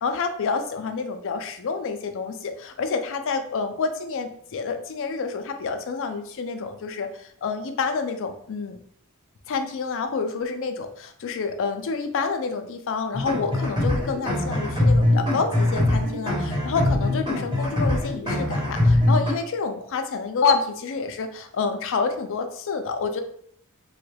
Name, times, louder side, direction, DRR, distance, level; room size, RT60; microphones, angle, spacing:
voice 1, 0.0-8.8 9.5-23.2, left 4 dB, 60° left, 7 dB, 0.4 m, -28 dB
sound 1, 13.1-19.3, left 1 dB, 20° right, 1.1 m, -22 dB
3.3 x 2.2 x 3.3 m, 0.62 s
head